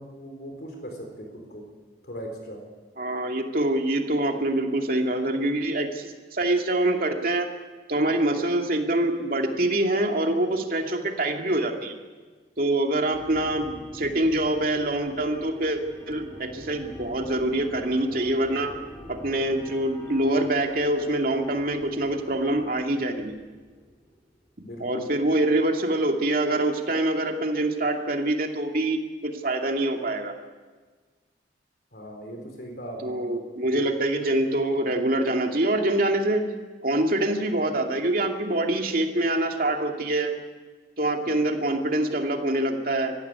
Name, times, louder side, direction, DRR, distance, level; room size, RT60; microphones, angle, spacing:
voice 1, 0.0-1.7 2.0-2.6 24.6-25.1 31.9-33.3 33.7-33.8, equal, 60° left, 3 dB, 4.0 m, -39 dB
voice 2, 3.0-7.5 7.9-12.0 12.6-15.8 16.1-18.7 19.1-23.4 24.8-30.3 33.0-36.4 36.8-40.3 41.0-43.1, right 1 dB, 50° right, 3 dB, 2.5 m, -25 dB
sound 1, 13.1-24.5, equal, 15° left, 4.5 m, -45 dB
23.5 x 15.5 x 9.7 m, 1.4 s
head